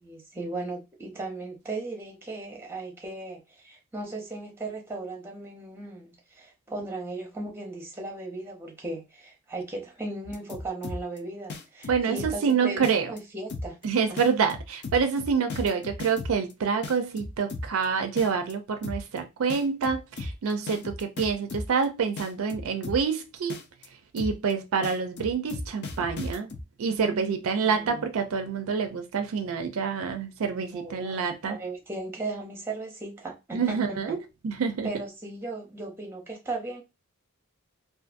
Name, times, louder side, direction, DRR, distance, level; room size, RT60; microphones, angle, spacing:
voice 1, 0.0-13.8 14.1-14.2 27.6-28.1 30.7-31.2 31.5-33.8 34.1-34.2 34.8-36.8, right 2 dB, 10° right, 0.7 m, -37 dB
sound 1, 10.2-11.2 11.5-12.5 12.8-13.2 13.5-13.8 14.2-16.5 16.8-17.8 18.2-18.5 18.8-19.2 19.5-21.8 22.2-23.2 23.5-23.9 24.2-24.5 24.8-26.6, left 2 dB, 50° left, 0.4 m, -36 dB
voice 2, 11.9-13.1 13.8-23.6 24.1-26.5 26.8-31.6 33.5-34.2 34.4-34.9, right 5 dB, 65° right, 0.4 m, -27 dB
2.6 x 2.3 x 2.4 m
head